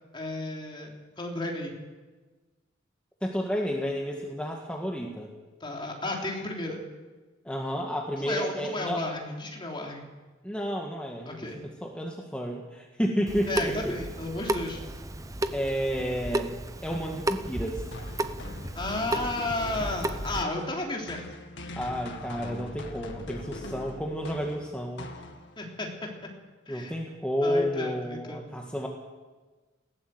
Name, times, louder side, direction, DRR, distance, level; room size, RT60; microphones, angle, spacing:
voice 1, 0.1-0.9 1.2-1.8 5.6-6.8 8.2-10.1 11.3-11.6 13.5-14.8 18.8-21.2 25.6-25.9 26.7-26.9 27.4-28.5, left 2 dB, 25° left, 0 dB, 3.5 m, -33 dB
voice 2, 3.2-5.3 7.5-9.1 10.4-14.0 15.5-17.9 21.8-25.1 26.7-28.9, equal, 5° left, 0 dB, 1.7 m, -31 dB
Water tap faucet / Sink (filling or washing) / Drip, 13.3-20.4, right 1 dB, 15° right, 0.8 m, -33 dB
sound 1, 17.9-25.7, left 2 dB, 65° left, 2.0 m, -42 dB
20.0 x 16.5 x 7.9 m, 1.3 s
head